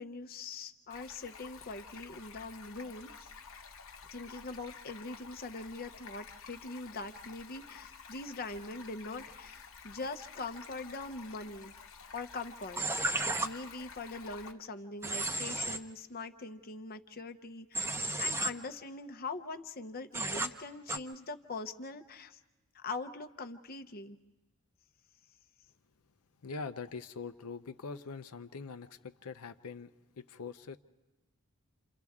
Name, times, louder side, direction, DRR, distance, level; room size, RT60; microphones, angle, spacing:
voice 1, 0.0-3.3 4.1-11.7 12.1-22.4 22.7-24.2, left 3 dB, 40° left, 8 dB, 0.7 m, -42 dB
Stream, 0.9-14.5, left 5 dB, 60° left, 1.0 m, -51 dB
Human voice / Train, 12.8-13.5 15.0-15.8 17.7-18.5 20.1-20.5 20.9-21.0, right 2 dB, 10° right, 0.7 m, -33 dB
voice 2, 26.4-29.9 30.2-30.8, left 4 dB, 90° left, 9 dB, 0.6 m, -43 dB
28.5 x 28.0 x 3.6 m, 1.1 s
head